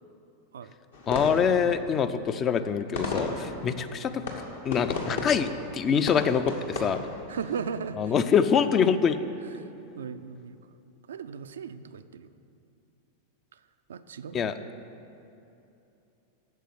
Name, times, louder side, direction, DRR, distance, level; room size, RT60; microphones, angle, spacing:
sound 1, 0.9-7.7, left 3 dB, 65° left, 1.3 m, -35 dB
voice 1, 1.1-4.2 4.6-7.0 8.0-9.2 14.3-14.5, left 7 dB, 30° left, 11 dB, 0.5 m, -25 dB
voice 2, 7.3-8.1 9.6-9.7 10.0-10.6 11.1-12.3 13.5-13.6 13.9-14.5, right 6 dB, 65° right, 11 dB, 0.4 m, -37 dB
9.1 x 6.8 x 7.9 m, 2.8 s
figure-of-eight pair, 90°, 0 cm